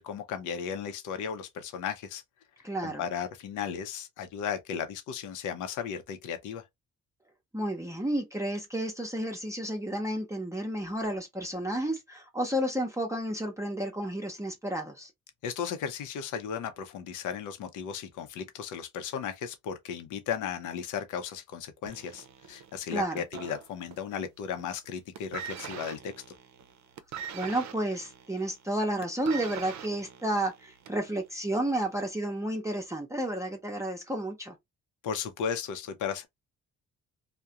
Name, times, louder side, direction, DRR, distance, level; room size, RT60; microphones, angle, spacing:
voice 1, 0.0-2.2 2.8-6.6 15.4-26.1 35.0-36.3, left 7 dB, 85° left, 0.6 m, -35 dB
voice 2, 2.6-3.0 7.5-15.1 22.9-23.2 27.3-34.6, right 1 dB, 10° right, 0.6 m, -31 dB
sound 1, 21.9-24.2 24.5-24.9 25.1-31.1 31.9-32.0, right 8 dB, 65° right, 0.5 m, -43 dB
2.3 x 2.1 x 2.7 m
cardioid pair, 90°, 30 cm